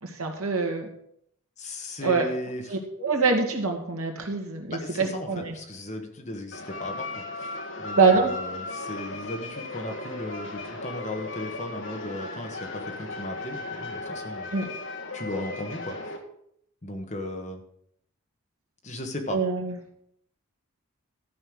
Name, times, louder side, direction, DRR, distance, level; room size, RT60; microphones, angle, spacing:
voice 1, 0.0-0.9 2.0-2.2 2.7-5.6 7.9-8.3 14.5-14.7 19.3-19.8, right 4 dB, 85° right, 2 dB, 2.1 m, -24 dB
voice 2, 1.6-2.7 4.7-7.5 7.8-14.5 15.1-16.0 16.8-17.6 18.8-19.4, left 1 dB, 35° left, 4 dB, 1.3 m, -36 dB
sound 1, 6.5-16.2, left 2 dB, 55° left, 1.4 m, -36 dB
13.0 x 5.5 x 6.3 m, 0.72 s
head